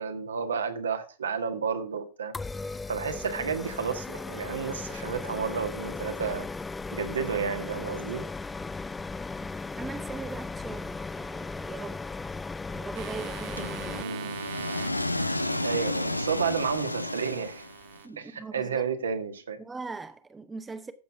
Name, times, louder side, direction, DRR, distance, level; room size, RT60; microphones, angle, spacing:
voice 1, 0.0-2.3 2.9-6.5 6.9-8.3 13.9-14.4 15.6-17.7 18.2-19.6, right 6 dB, 70° right, 1.6 m, -31 dB
sound 1, 2.3-14.0, left 3 dB, 10° left, 0.4 m, -37 dB
voice 2, 9.8-12.0 12.7-14.0 18.0-18.8 19.6-20.9, right 4 dB, 10° right, 0.9 m, -40 dB
sound 2, 12.9-18.1, right 14 dB, 45° right, 1.0 m, -44 dB
sound 3, 13.6-18.0, left 1 dB, 85° left, 0.7 m, -31 dB
14.0 x 7.1 x 3.5 m
figure-of-eight pair, 90°, 0 cm